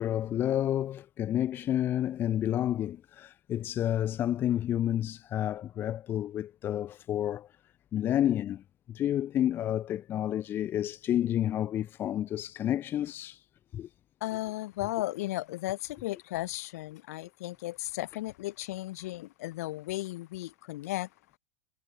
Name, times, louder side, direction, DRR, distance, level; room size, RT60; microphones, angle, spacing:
voice 1, 0.0-7.5 7.9-13.4 13.7-13.9, left 11 dB, 25° left, 0.9 m, -30 dB
voice 2, 14.2-21.1, left 17 dB, 60° left, 3.7 m, -35 dB
supercardioid pair, 155°, 9 cm